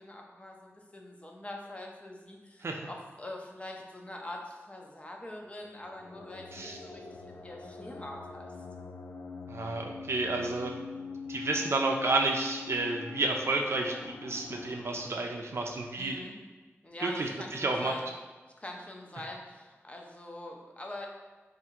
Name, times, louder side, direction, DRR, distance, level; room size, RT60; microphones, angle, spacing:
voice 1, 0.0-8.5 16.0-16.3 16.8-18.1 18.6-21.1, left 1 dB, 25° left, 0 dB, 0.6 m, -44 dB
sound 1, 5.7-15.1, left 4 dB, 85° left, 0.4 m, -43 dB
voice 2, 9.5-10.7 11.3-16.2 17.0-17.9, right 2 dB, 65° right, 1 dB, 0.5 m, -31 dB
3.6 x 2.6 x 4.4 m, 1.3 s
wide cardioid pair, 90°, 5 cm